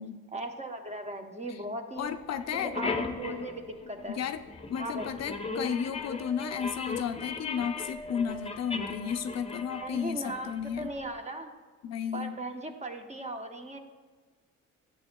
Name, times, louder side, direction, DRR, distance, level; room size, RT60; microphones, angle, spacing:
voice 1, 0.3-2.1 2.6-2.9 3.1-4.2 4.8-5.3 9.8-11.5 12.1-13.8, right 1 dB, 20° right, 5 dB, 0.9 m, -38 dB
voice 2, 2.0-2.7 4.1-4.4 4.7-10.9 11.8-12.3, left 8 dB, 50° left, 8 dB, 0.5 m, -33 dB
sound 1, 2.1-2.2 2.4-11.1, left 3 dB, 20° left, 0.7 m, -38 dB
11.0 x 7.9 x 2.3 m, 1.4 s
supercardioid pair, 75°, 33 cm